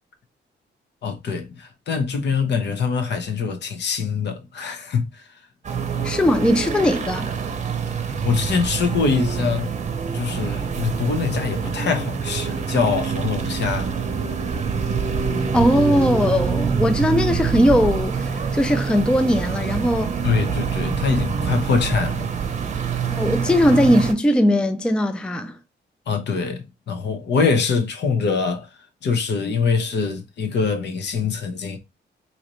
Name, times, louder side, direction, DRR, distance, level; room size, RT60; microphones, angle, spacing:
voice 1, 1.0-5.4 7.9-9.7 10.1-14.0 20.2-22.3 26.1-28.7 29.0-31.8, left 5 dB, 65° left, 0.9 m, -24 dB
sound 1, 5.6-24.1, right 6 dB, 40° right, 0.7 m, -25 dB
voice 2, 6.0-7.3 15.5-20.1 23.1-25.5, left 1 dB, 5° left, 0.3 m, -19 dB
4.1 x 2.8 x 3.0 m
cardioid pair, 125°, 19 cm